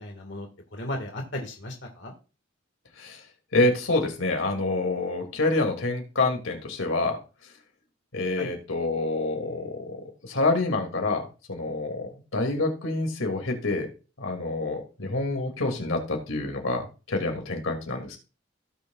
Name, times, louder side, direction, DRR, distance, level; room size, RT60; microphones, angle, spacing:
voice 1, 0.0-2.1 8.4-8.5, left 1 dB, 60° left, 2 dB, 1.9 m, -35 dB
voice 2, 3.5-7.2 8.1-10.0 10.2-11.2 11.5-13.9 14.2-16.8 17.1-18.2, left 2 dB, 90° left, 3 dB, 2.5 m, -27 dB
17.0 x 6.7 x 2.4 m, 0.33 s
head